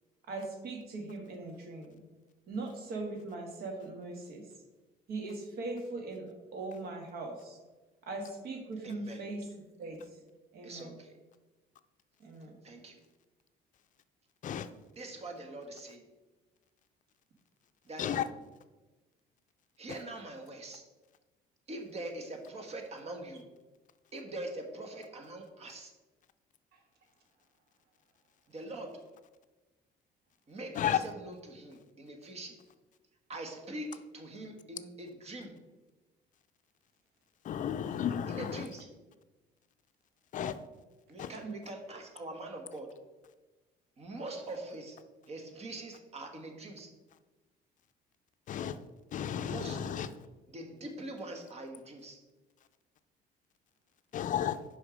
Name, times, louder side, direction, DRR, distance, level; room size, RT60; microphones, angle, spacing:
voice 1, 0.3-2.0 2.5-4.4 5.1-7.6 8.0-9.5 9.8-10.0 10.5-11.0 12.2-12.6 41.4-41.5, right 3 dB, 65° right, 3 dB, 1.6 m, -40 dB
voice 2, 8.8-9.2 10.6-11.1 12.6-13.0 14.9-16.0 17.8-18.2 19.8-20.8 21.7-23.4 24.1-25.9 28.5-29.0 30.5-32.6 33.3-35.6 38.3-38.9 41.1-42.9 44.0-45.0 45.3-46.9 49.4-49.9 50.5-52.2, right 2 dB, 40° right, 4 dB, 1.4 m, -43 dB
voice 3, 37.5-38.5 40.3-40.5 41.2-41.3 48.5-48.7 49.1-50.1 54.1-54.6, left 10 dB, 50° left, 11 dB, 0.4 m, -32 dB
6.0 x 5.5 x 5.1 m, 1.2 s
cardioid pair, 110°, 17 cm